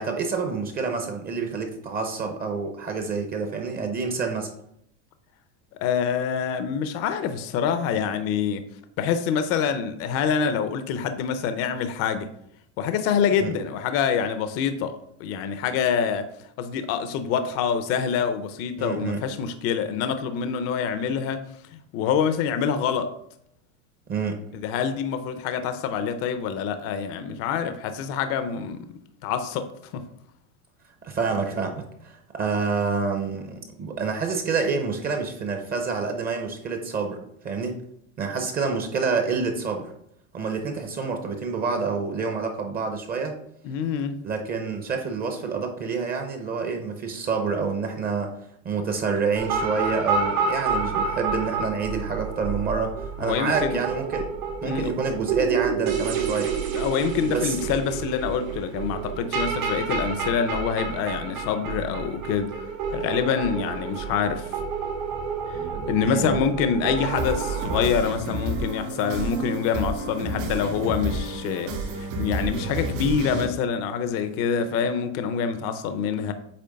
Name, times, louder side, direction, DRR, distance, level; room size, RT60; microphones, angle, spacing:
voice 1, 0.0-4.5 13.4-13.5 18.8-19.2 24.1-24.4 31.0-37.2 37.4-37.8 38.2-39.9 40.3-43.3 44.2-48.3 48.6-54.3 54.6-56.5 57.3-57.8 66.0-66.4, right 5 dB, 25° right, 0.7 m, -28 dB
voice 2, 5.8-8.7 9.0-12.3 12.8-16.3 16.6-21.4 21.7-23.1 24.5-28.9 29.2-30.1 43.6-44.2 53.2-53.8 54.6-54.9 56.7-62.6 62.9-64.5 65.5-65.6 65.9-76.3, left 7 dB, 35° left, 0.5 m, -26 dB
sound 1, 49.4-67.8, right 5 dB, 90° right, 2.4 m, -29 dB
sound 2, 67.1-73.5, right 1 dB, 70° right, 3.0 m, -30 dB
8.6 x 3.0 x 5.2 m
supercardioid pair, 155°, 41 cm